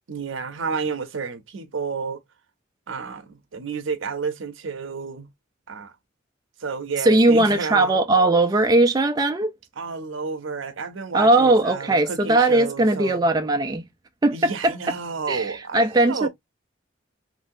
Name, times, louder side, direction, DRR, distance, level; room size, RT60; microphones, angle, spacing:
voice 1, 0.1-2.2 2.9-5.3 5.7-5.9 6.6-8.0 9.8-13.3 14.3-16.3, right 5 dB, 80° right, 0.7 m, -31 dB
voice 2, 7.0-9.5 11.1-13.9 14.2-14.7 15.3-16.3, right 2 dB, 20° right, 0.3 m, -19 dB
3.1 x 2.7 x 2.6 m
head